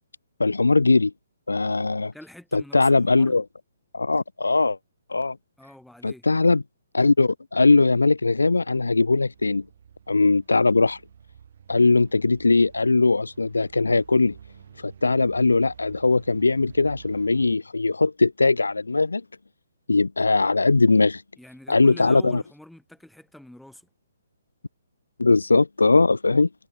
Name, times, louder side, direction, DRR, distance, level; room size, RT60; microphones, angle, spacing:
voice 1, 0.4-1.1 1.5-2.1 2.5-3.4 3.9-4.8 5.1-5.4 6.0-6.6 6.9-9.6 10.1-11.0 11.7-14.4 14.8-19.2 19.9-21.2 21.7-22.4 25.2-26.5, left 3 dB, 75° left, 0.3 m, -20 dB
voice 2, 2.1-3.4 5.6-6.3 21.4-23.9, left 1 dB, ahead, 2.4 m, -45 dB
sound 1, 8.1-17.5, right 8 dB, 50° right, 4.5 m, -49 dB
figure-of-eight pair, 130°, 0 cm